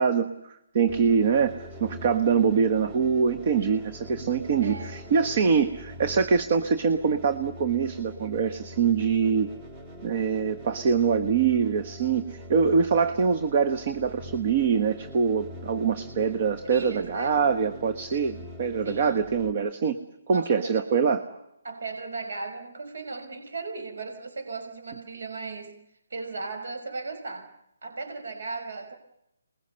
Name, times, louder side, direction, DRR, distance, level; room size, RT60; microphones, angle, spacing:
voice 1, 0.0-9.5 10.0-21.2, right 6 dB, 30° right, 13 dB, 1.2 m, -24 dB
sound 1, 0.9-19.5, left 1 dB, 10° right, 1.7 m, -43 dB
voice 2, 4.6-5.0 12.8-12.9 16.6-17.4 18.8-19.3 20.3-20.9 21.2-21.3 21.6-25.7 26.1-27.5 27.8-29.0, right 3 dB, 60° right, 5 dB, 5.5 m, -37 dB
28.0 x 21.0 x 6.9 m, 0.82 s
hypercardioid pair, 175°, 0 cm